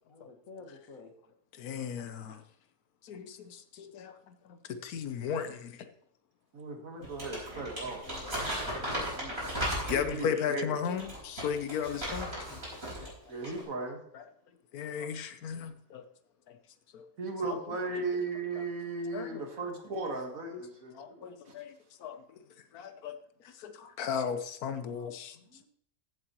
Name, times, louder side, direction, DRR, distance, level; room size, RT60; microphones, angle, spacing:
voice 1, 0.1-1.1 8.0-9.4 25.3-25.7, left 3 dB, 65° left, 1 dB, 2.1 m, -50 dB
voice 2, 1.5-2.4 3.0-5.9 7.0-7.7 8.2-8.3 8.6-8.9 9.4-9.5 9.9-12.6 13.0-13.1 13.4-13.5 14.1-14.3 14.7-16.1 16.5-16.6 16.9-17.1 17.4-18.0 18.5-18.6 19.1-19.5 20.5-25.6, left 7 dB, 85° left, 10 dB, 1.3 m, -37 dB
voice 3, 6.5-8.0 9.9-10.7 13.3-14.0 17.2-21.3, right 3 dB, 65° right, 3 dB, 2.0 m, -36 dB
Crumpling crinkling, 7.0-10.2 10.8-13.1 13.4-13.6, equal, 40° right, 5.2 m, -36 dB
15.0 x 7.8 x 3.0 m, 0.70 s
omnidirectional pair, 1.6 m